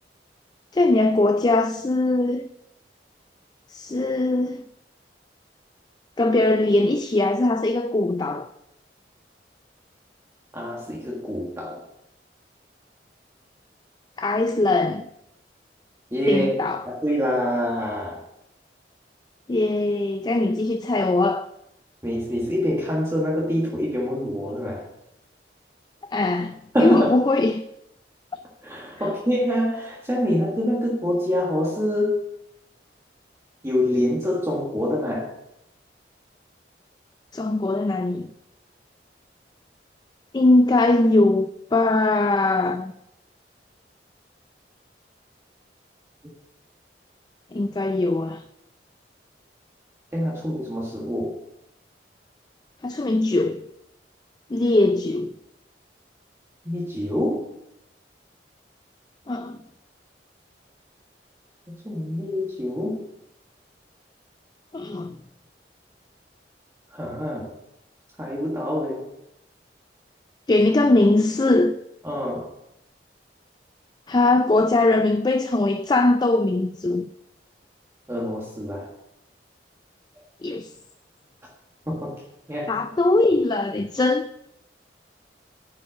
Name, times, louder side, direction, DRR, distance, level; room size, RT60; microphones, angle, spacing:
voice 1, 0.7-2.5 3.7-4.6 6.2-8.5 14.2-15.1 16.3-16.8 19.5-21.5 26.1-27.6 37.3-38.3 40.3-42.9 47.5-48.4 52.8-53.6 54.5-55.3 59.3-59.6 64.7-65.2 70.5-71.8 74.1-77.1 80.4-80.7 82.7-84.5, left 2 dB, 25° left, 0.3 m, -21 dB
voice 2, 10.5-11.8 16.1-16.6 16.8-18.2 22.0-24.9 26.7-27.1 28.6-32.2 33.6-35.3 50.1-51.4 56.6-57.5 61.7-63.0 66.9-67.5 68.2-69.1 72.0-72.5 78.1-78.9 81.9-82.2 82.5-82.8, equal, 15° right, 1.6 m, -25 dB
10.0 x 5.4 x 6.4 m
head